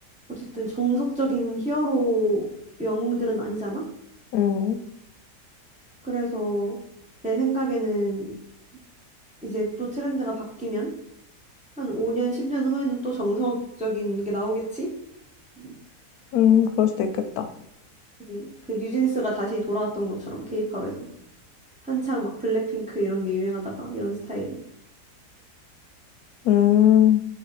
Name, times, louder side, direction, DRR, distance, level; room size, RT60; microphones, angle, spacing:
voice 1, 0.3-2.4 2.8-3.8 6.0-6.8 7.2-8.3 9.4-10.9 11.8-14.9 15.6-15.7 18.3-20.9 21.8-24.5, right 2 dB, 10° right, -4 dB, 0.3 m, -27 dB
voice 2, 4.3-4.8 16.3-17.5 26.4-27.2, left 10 dB, 75° left, 7 dB, 1.0 m, -19 dB
3.4 x 2.6 x 4.0 m, 0.76 s
omnidirectional pair, 1.7 m